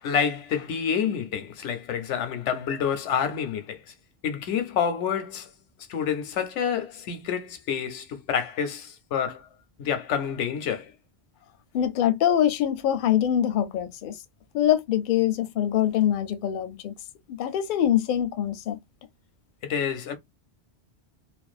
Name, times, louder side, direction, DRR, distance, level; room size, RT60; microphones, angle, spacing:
voice 1, 0.0-3.8 4.2-5.5 5.9-9.5 9.8-10.9 19.6-20.1, left 7 dB, 85° left, 1.0 m, -28 dB
voice 2, 11.7-14.2 14.5-16.9 17.3-18.8, left 10 dB, 60° left, 0.6 m, -24 dB
2.5 x 2.2 x 2.3 m
omnidirectional pair, 1.2 m